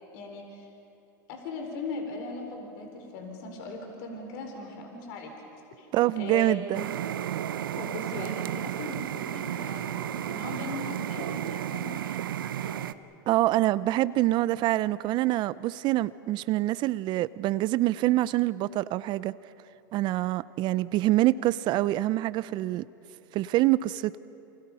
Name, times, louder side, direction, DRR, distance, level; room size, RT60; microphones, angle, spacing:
voice 1, 0.1-0.7 1.3-5.3 5.8-5.9 6.2-6.5 7.7-12.9, left 3 dB, 65° left, 3 dB, 4.4 m, -39 dB
voice 2, 5.9-6.9 13.3-19.3 19.9-22.8 23.3-24.2, right 16 dB, 45° right, 17 dB, 0.6 m, -25 dB
sound 1, 6.7-12.9, right 11 dB, 85° right, 0.8 m, -33 dB
29.0 x 27.0 x 5.6 m, 2.7 s
hypercardioid pair, 110°, 11 cm